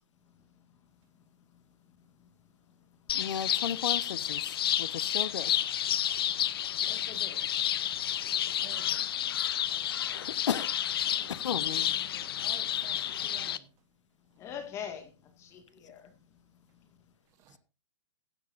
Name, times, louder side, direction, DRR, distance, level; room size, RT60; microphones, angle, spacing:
voice 1, 0.4-0.8 1.4-2.3 2.7-3.2 5.1-5.2 6.1-8.5 14.4-17.1, left 8 dB, 20° left, 1.9 m, -48 dB
voice 2, 3.1-5.5 10.1-10.7 11.3-11.9, left 8 dB, 80° left, 1.2 m, -35 dB
sound 1, 3.1-13.6, left 11 dB, 55° left, 0.8 m, -30 dB
voice 3, 8.5-10.3 11.0-13.7 17.3-17.6, right 10 dB, 20° right, 1.0 m, -54 dB
16.0 x 12.0 x 2.6 m
hypercardioid pair, 165°, 15 cm